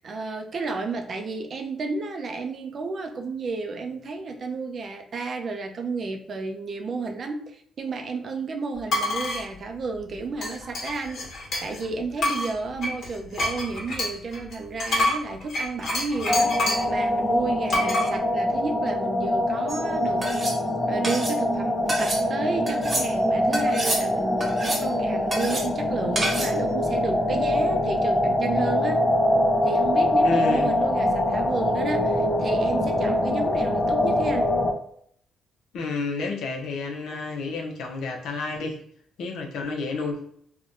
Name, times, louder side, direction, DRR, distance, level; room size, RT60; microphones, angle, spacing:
voice 1, 0.0-11.2 11.6-16.5 16.9-20.5 20.9-29.0 29.6-34.5, right 3 dB, 50° right, 5 dB, 0.5 m, -32 dB
sound 1, 8.9-9.4 10.4-11.8 12.2-16.9 17.7-18.1, left 2 dB, 60° left, 1.2 m, -27 dB
sound 2, 16.3-34.7, left 1 dB, 25° left, 0.5 m, -24 dB
sound 3, 19.7-19.8 20.2-20.6 21.0-21.4 21.9-22.2 22.7-23.1 23.5-24.0 24.4-24.9 25.3-25.7 26.2-26.6, right 2 dB, 30° right, 0.9 m, -28 dB
voice 2, 30.2-30.7 35.7-38.8 39.2-40.2, left 3 dB, 75° left, 2 dB, 0.6 m, -30 dB
3.3 x 2.2 x 2.6 m, 0.64 s
cardioid pair, 90°, 0 cm